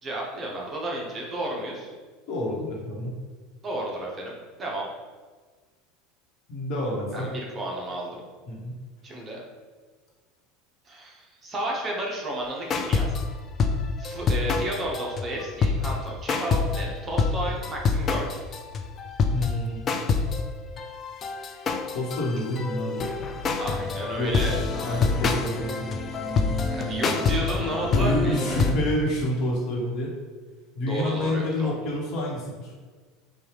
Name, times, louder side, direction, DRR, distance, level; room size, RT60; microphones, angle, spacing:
voice 1, 0.0-1.9 3.6-4.8 7.1-8.2 9.0-9.4 10.9-13.1 14.0-18.4 23.5-25.0 26.7-28.6 30.9-31.7, right 1 dB, 25° right, -2 dB, 0.7 m, -32 dB
voice 2, 2.3-3.1 6.5-7.3 8.5-8.7 19.3-19.8 21.9-23.0 24.1-24.3 24.8-25.7 27.8-30.1 30.7-32.7, left 1 dB, 45° left, -2 dB, 1.1 m, -28 dB
sound 1, 12.7-13.2 13.6-16.0 16.3-16.9 17.2-17.4 17.6-28.7, left 4 dB, 30° left, 0.3 m, -26 dB
4.4 x 2.3 x 3.3 m, 1.4 s
supercardioid pair, 135°, 0 cm